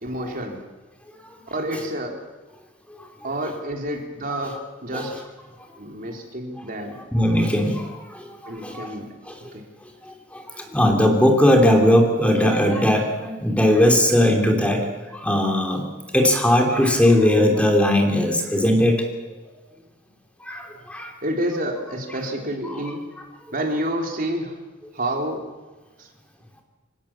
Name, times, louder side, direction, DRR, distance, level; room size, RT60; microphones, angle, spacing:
voice 1, 0.0-0.6 1.5-2.2 3.2-5.3 5.8-7.0 8.4-9.1 9.5-9.6 21.2-23.1 23.5-24.6 24.9-25.4 26.0-26.1, right 1 dB, 45° right, 2 dB, 3.4 m, -29 dB
voice 2, 7.1-8.9 9.3-9.4 10.0-15.8 16.1-19.0 20.4-21.1 22.6-22.8, left 1 dB, 5° left, 2 dB, 2.7 m, -19 dB
25.5 x 18.0 x 7.2 m, 1.2 s
head